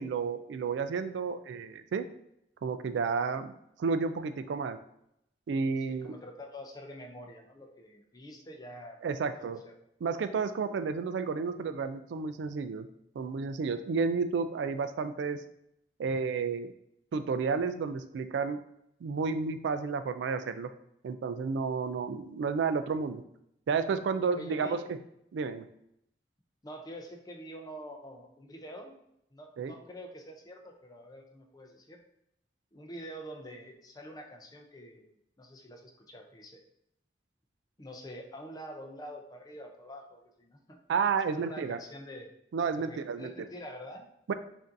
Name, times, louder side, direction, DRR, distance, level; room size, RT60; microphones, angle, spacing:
voice 1, 0.0-2.0 2.6-3.5 3.8-4.8 5.5-6.2 9.0-9.6 10.0-12.9 13.2-15.4 16.0-16.7 17.1-18.6 19.0-20.7 21.0-23.2 23.7-24.8 25.3-25.7 29.6-29.7 40.9-41.8 42.5-43.3 44.3-44.4, right 5 dB, 80° right, 10 dB, 0.3 m, -31 dB
voice 2, 5.9-9.7 24.3-24.8 26.6-28.9 29.3-32.0 32.7-35.1 35.4-36.6 37.8-40.8 41.3-42.3 42.8-44.1, equal, 20° left, 2 dB, 0.5 m, -46 dB
5.1 x 2.6 x 2.5 m, 0.76 s
head